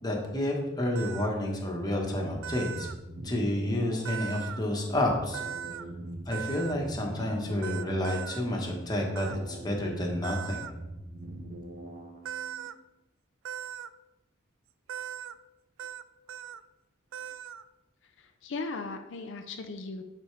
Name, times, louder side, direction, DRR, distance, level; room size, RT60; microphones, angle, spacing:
voice 1, 0.0-2.9 3.2-5.4 6.3-10.7, left 1 dB, 20° left, -1 dB, 1.2 m, -30 dB
sound 1, 0.9-1.3 2.4-2.9 4.0-4.6 5.3-5.8 6.3-6.7 7.6-8.4 9.1-9.4 10.2-10.7 12.2-12.7 13.4-13.9 14.9-15.3 15.8-16.0 16.3-16.6 17.1-17.6, right 9 dB, 70° right, 0.3 m, -39 dB
sound 2, 2.7-12.7, right 1 dB, 45° right, 0.7 m, -44 dB
voice 2, 18.0-20.0, left 3 dB, 70° left, 5 dB, 0.5 m, -38 dB
9.8 x 4.3 x 3.3 m, 1.0 s
head